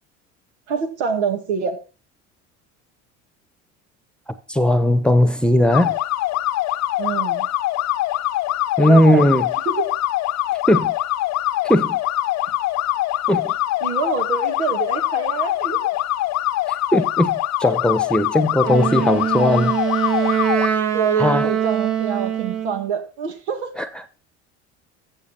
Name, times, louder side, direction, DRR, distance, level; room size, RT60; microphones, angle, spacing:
voice 1, 0.7-1.8 7.0-7.5 8.8-9.3 9.7-9.9 13.8-15.9 20.9-23.7, right 6 dB, 80° right, 2.1 m, -25 dB
voice 2, 4.5-6.0 8.8-9.5 10.7-10.9 11.6-12.0 13.3-13.5 16.9-19.8 21.2-21.5 23.8-23.9, left 1 dB, 5° left, 1.1 m, -17 dB
sound 1, 5.7-20.7, left 15 dB, 50° left, 0.8 m, -23 dB
Wind instrument woodwind instrument, 18.6-22.9, right 9 dB, 45° right, 1.5 m, -22 dB
14.0 x 7.3 x 4.4 m
hypercardioid pair, 75°, 34 cm